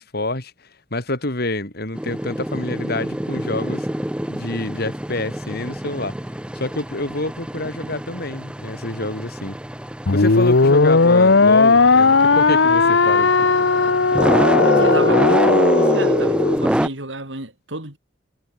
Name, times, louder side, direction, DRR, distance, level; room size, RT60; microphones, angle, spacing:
voice 1, 0.0-3.9 4.3-6.1 6.5-9.6 10.1-13.3, left 2 dB, 60° left, 3.9 m, -27 dB
sound 1, 1.9-16.9, right 1 dB, 5° right, 0.6 m, -25 dB
sound 2, 10.1-16.6, left 4 dB, 75° left, 1.0 m, -16 dB
voice 2, 14.5-18.0, right 2 dB, 90° right, 6.2 m, -31 dB
head